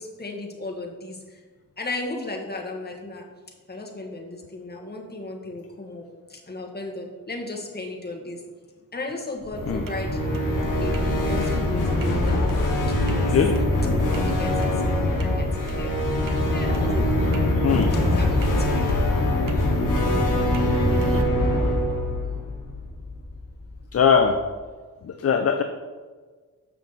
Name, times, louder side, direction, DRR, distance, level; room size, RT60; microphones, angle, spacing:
voice 1, 0.0-1.4 1.8-3.3 3.7-6.0 6.3-8.4 8.9-10.2 10.8-12.5 13.0-13.3 14.2-16.0 16.5-17.3 18.2-19.1, left 2 dB, 30° left, 0 dB, 1.5 m, -35 dB
sound 1, 9.4-23.4, left 1 dB, 70° left, 1.4 m, -23 dB
sound 2, 9.5-21.2, right 3 dB, 75° right, 0.9 m, -36 dB
voice 2, 17.6-17.9 20.5-20.8 23.9-24.4 25.0-25.6, left 6 dB, 45° left, 6 dB, 0.5 m, -21 dB
7.3 x 5.8 x 4.0 m, 1.4 s
wide cardioid pair, 90°, 33 cm